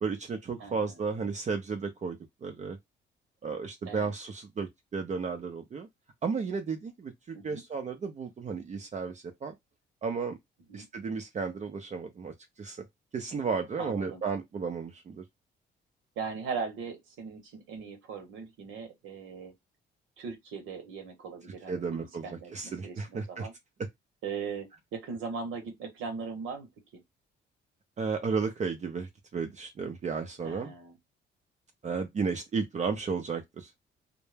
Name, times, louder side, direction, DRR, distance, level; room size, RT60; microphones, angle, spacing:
voice 1, 0.0-2.8 3.4-5.9 6.2-9.5 10.0-10.4 10.7-12.8 13.1-15.2 21.7-23.5 28.0-30.7 31.8-33.7, right 5 dB, 35° right, 0.5 m, -33 dB
voice 2, 0.6-1.0 3.9-4.1 7.3-7.6 10.7-10.9 13.8-14.2 16.2-19.5 20.2-23.5 24.2-27.0 30.4-31.0, right 5 dB, 90° right, 0.9 m, -39 dB
2.1 x 2.1 x 3.2 m
cardioid pair, 90°, 20 cm